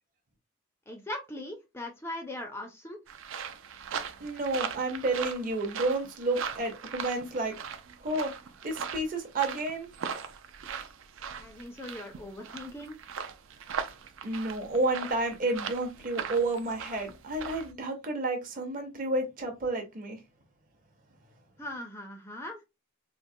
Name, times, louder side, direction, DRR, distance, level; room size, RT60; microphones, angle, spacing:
voice 1, 0.9-3.0 11.4-13.0 21.6-22.6, left 1 dB, 10° left, 0.4 m, -40 dB
sound 1, 3.1-17.7, right 7 dB, 60° right, 0.4 m, -39 dB
voice 2, 4.2-7.5 8.0-8.3 8.6-9.9 14.2-20.2, right 2 dB, 40° right, 0.8 m, -30 dB
3.7 x 2.0 x 2.6 m
head